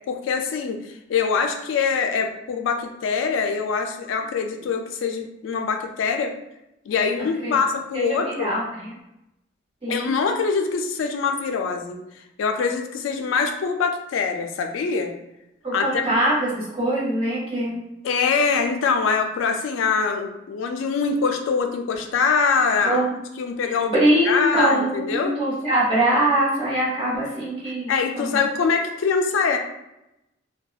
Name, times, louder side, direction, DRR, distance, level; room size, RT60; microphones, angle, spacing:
voice 1, 0.1-6.3 6.9-8.5 9.9-12.0 12.4-15.1 15.7-16.0 18.0-23.0 23.4-23.9 24.3-25.3 27.9-29.6, left 5 dB, 75° left, 5 dB, 0.3 m, -23 dB
voice 2, 7.2-7.5 7.9-8.9 9.8-10.1 15.6-17.8 22.8-23.1 23.6-28.4, right 1 dB, 30° right, -8 dB, 1.1 m, -23 dB
2.6 x 2.2 x 2.3 m, 0.89 s
head